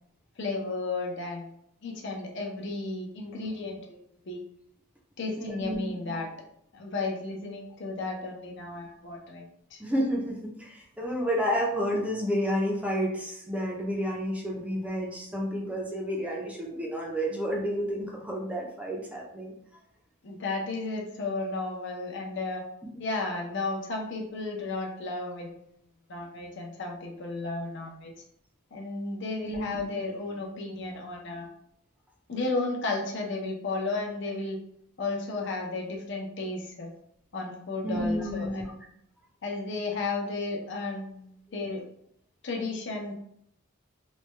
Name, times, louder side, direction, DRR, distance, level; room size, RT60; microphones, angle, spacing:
voice 1, 0.4-1.5 1.8-4.0 4.3-4.4 5.2-6.3 6.7-9.5 9.7-9.8 20.2-22.6 23.0-25.5 26.1-28.1 28.7-31.5 32.3-34.6 35.0-36.9 37.3-38.8 39.4-41.8 42.4-43.2, left 3 dB, 55° left, 0 dB, 0.6 m, -33 dB
voice 2, 5.4-6.2 9.8-19.5 29.5-29.9 37.8-38.7, equal, 5° right, -2 dB, 0.5 m, -30 dB
3.2 x 2.2 x 3.1 m, 0.72 s
head